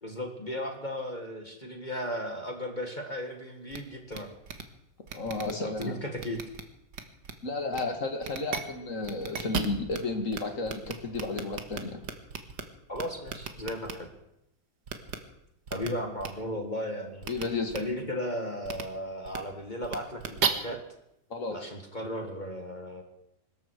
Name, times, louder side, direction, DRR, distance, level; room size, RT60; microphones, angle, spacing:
voice 1, 0.0-4.3 5.6-6.4 12.9-14.1 15.7-20.8 21.5-23.0, equal, 25° left, 4 dB, 1.8 m, -35 dB
sound 1, 3.7-3.8 4.1-4.2 4.5-4.6 5.1-5.8 6.2-6.6 6.9-7.3 7.7-7.8 8.2-8.6 9.0-10.0 10.3-10.4 10.7-12.6 12.9-13.9 14.9-15.2 15.7-15.9 16.2-16.3 17.2-17.4 17.7-17.8 18.6-18.8 19.2-19.4 19.8-20.5, right 7 dB, 60° right, 1.8 m, -34 dB
voice 2, 5.1-6.0 7.4-12.0 17.3-17.7 21.3-21.7, left 3 dB, 40° left, 5 dB, 2.5 m, -32 dB
23.5 x 13.5 x 4.7 m, 0.83 s
omnidirectional pair, 2.1 m